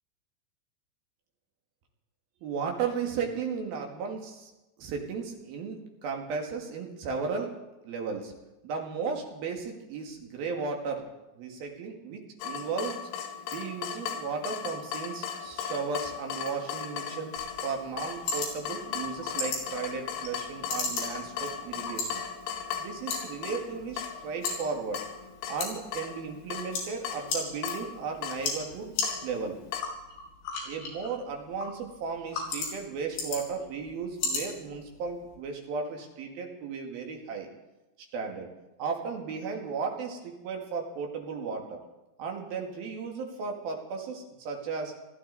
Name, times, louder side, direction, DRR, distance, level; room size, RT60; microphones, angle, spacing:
voice 1, 2.4-4.5 4.8-7.5 7.8-8.3 8.6-11.1 11.4-13.0 13.5-22.2 22.8-25.0 25.5-28.9 29.2-29.6 30.6-37.5 38.1-38.5 38.8-41.8 42.2-44.9, right 5 dB, 55° right, 2 dB, 3.2 m, -35 dB
Water tap faucet / Drip, 12.4-29.8, left 8 dB, 90° left, 4.3 m, -38 dB
sound 1, 17.4-35.4, left 4 dB, 55° left, 6.1 m, -38 dB
24.5 x 14.0 x 4.1 m, 1.0 s
omnidirectional pair, 5.9 m